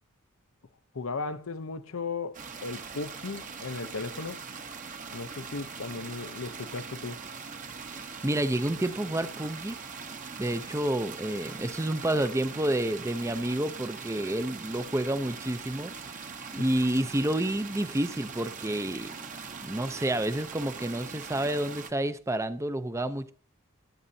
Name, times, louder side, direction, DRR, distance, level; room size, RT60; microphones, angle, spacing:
voice 1, 0.9-4.5 5.1-7.3, left 4 dB, 65° left, 0.7 m, -36 dB
sound 1, 2.3-21.9, right 5 dB, 35° right, 0.9 m, -41 dB
voice 2, 7.9-9.8 10.4-16.3 16.5-19.1 19.6-23.3, right 1 dB, 15° right, 0.5 m, -29 dB
21.0 x 8.7 x 2.7 m
head